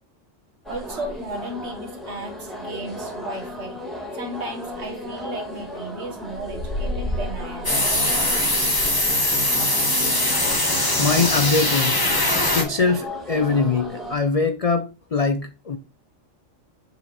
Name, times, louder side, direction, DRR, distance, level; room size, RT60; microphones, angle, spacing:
sound 1, 0.6-14.2, left 1 dB, ahead, 1.8 m, -33 dB
voice 1, 0.7-3.8 4.1-7.7, right 2 dB, 55° right, 1.8 m, -35 dB
sound 2, 7.6-12.6, left 1 dB, 15° left, 1.5 m, -21 dB
voice 2, 11.0-12.1 12.5-15.8, left 4 dB, 55° left, 0.4 m, -22 dB
7.3 x 4.2 x 4.2 m
omnidirectional pair, 1.4 m